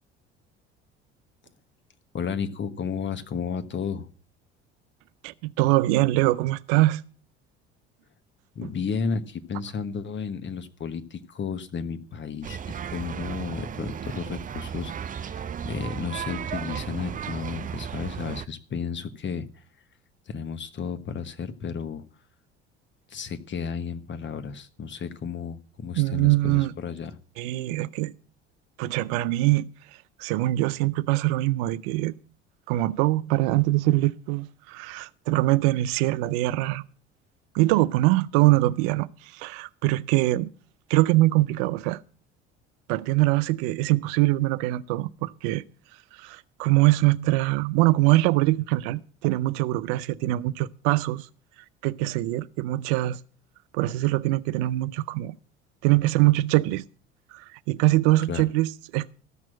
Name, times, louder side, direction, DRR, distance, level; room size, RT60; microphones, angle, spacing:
voice 1, 2.1-4.1 8.5-19.6 20.3-22.0 23.1-27.2 58.3-58.5, left 6 dB, 35° left, 1.3 m, -33 dB
voice 2, 5.2-7.0 8.6-8.7 26.0-26.7 27.4-28.1 28.8-29.7 30.2-32.1 32.7-36.8 37.5-40.5 40.9-42.0 42.9-45.6 46.2-51.3 51.8-53.2 53.7-55.4 55.8-56.9 57.3-59.1, right 18 dB, 65° right, 0.6 m, -23 dB
sound 1, 12.4-18.5, right 8 dB, 25° right, 0.5 m, -35 dB
14.0 x 6.2 x 7.6 m
hypercardioid pair, 65°, 32 cm